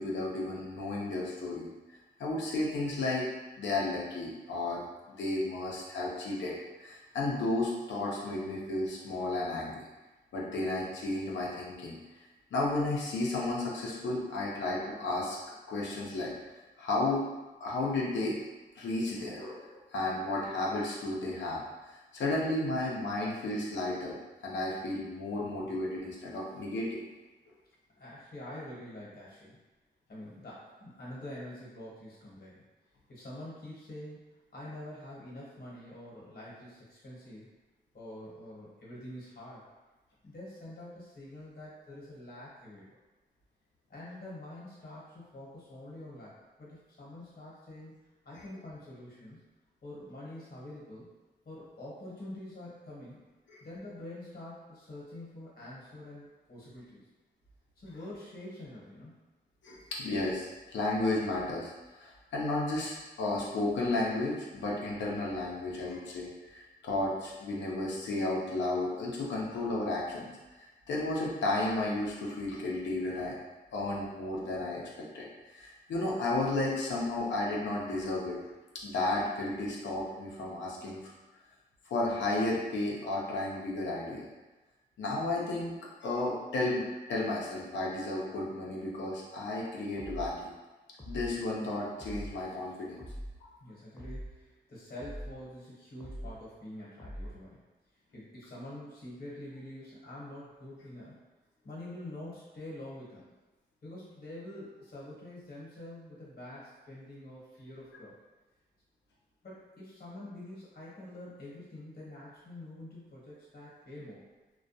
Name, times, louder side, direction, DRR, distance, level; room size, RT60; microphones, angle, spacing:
voice 1, 0.0-1.7 2.2-3.3 3.6-4.8 5.1-9.8 10.3-12.0 12.5-15.4 15.7-16.3 16.8-17.2 17.6-18.3 18.8-21.6 22.1-24.2 24.4-27.0 53.5-53.6 59.6-59.8 60.0-70.3 70.9-73.3 73.7-78.4 78.8-81.0 81.9-84.3 85.0-85.7 86.0-86.8 87.1-90.5 91.1-93.0 93.4-93.5, left 2 dB, 90° left, -4 dB, 0.6 m, -33 dB
voice 2, 25.4-25.7 28.0-29.6 30.1-32.6 33.1-34.2 34.5-37.5 37.9-39.6 40.2-43.0 43.9-47.9 48.2-49.4 49.8-51.1 51.4-53.2 53.6-57.1 57.8-59.1 84.7-84.8 93.6-97.6 98.1-101.2 101.6-103.3 103.8-108.1 109.4-114.2, left 1 dB, 55° left, -7 dB, 1.0 m, -46 dB
sound 1, 90.0-90.4 91.0-91.4 92.0-92.4 93.0-93.4 94.0-94.4 95.0-95.4 96.0-96.4 97.0-97.4, equal, 15° left, 0.6 m, -42 dB
2.2 x 2.2 x 2.6 m, 1.2 s
cardioid pair, 65°, 18 cm